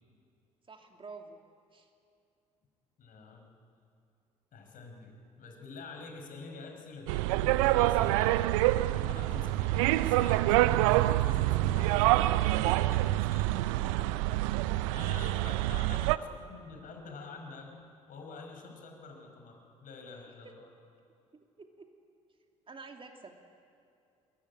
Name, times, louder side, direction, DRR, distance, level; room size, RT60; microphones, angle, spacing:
voice 1, 0.7-1.4 1.7-1.9 15.4-16.0 20.4-20.5 21.3-21.9 22.7-23.4, right 4 dB, 30° right, 4 dB, 2.7 m, -49 dB
voice 2, 3.0-3.5 4.5-8.4 8.9-14.3 14.9-17.8 18.1-20.7, left 4 dB, 50° left, 3 dB, 5.3 m, -47 dB
sound 1, 7.1-16.2, right 16 dB, 70° right, 0.6 m, -26 dB
23.5 x 21.5 x 10.0 m, 2.4 s
figure-of-eight pair, 50°, 17 cm